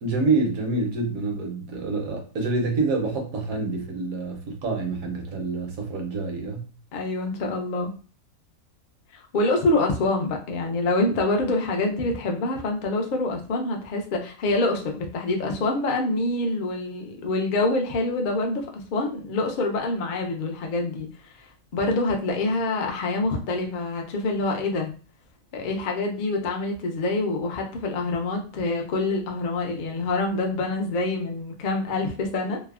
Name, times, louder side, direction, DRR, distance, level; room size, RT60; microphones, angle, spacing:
voice 1, 0.0-6.6, right 3 dB, 70° right, 1.2 m, -27 dB
voice 2, 6.9-7.9 9.1-21.1 21.4-24.9 25.5-32.6, left 2 dB, 60° left, 0.5 m, -26 dB
3.2 x 2.0 x 2.3 m
omnidirectional pair, 1.5 m